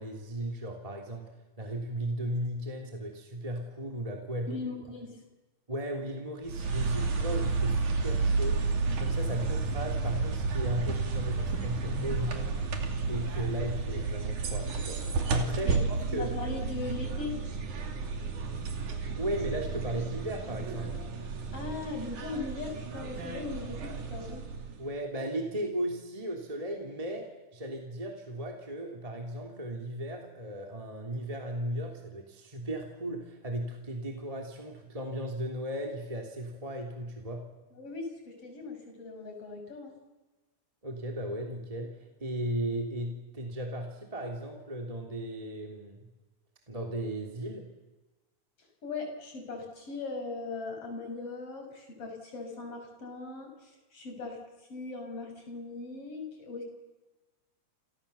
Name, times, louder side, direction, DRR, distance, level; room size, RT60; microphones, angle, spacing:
voice 1, 0.0-4.6 5.7-8.6 9.0-12.6 13.1-16.3 19.2-21.0 24.8-37.4 40.8-46.1 46.7-47.7, right 1 dB, 10° right, 1 dB, 3.0 m, -36 dB
voice 2, 4.5-5.2 15.6-15.8 16.1-17.4 21.5-24.5 37.8-39.9 48.8-56.7, left 3 dB, 50° left, 4 dB, 7.1 m, -39 dB
sound 1, 6.4-24.9, right 4 dB, 80° right, 4.3 m, -32 dB
29.5 x 28.5 x 7.1 m, 1.1 s
omnidirectional pair, 3.5 m